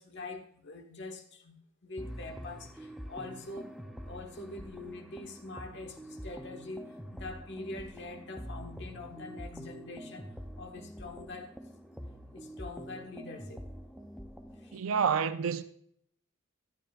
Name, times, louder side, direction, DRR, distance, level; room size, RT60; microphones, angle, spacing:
voice 1, 0.0-1.6 1.8-3.7 4.0-11.6 11.9-12.0 12.3-13.7 14.6-14.8, left 2 dB, 55° left, 1.4 m, -44 dB
sound 1, 2.0-14.8, equal, ahead, 0.5 m, -46 dB
voice 2, 14.7-15.6, right 6 dB, 75° right, 0.5 m, -28 dB
12.0 x 11.5 x 2.4 m
head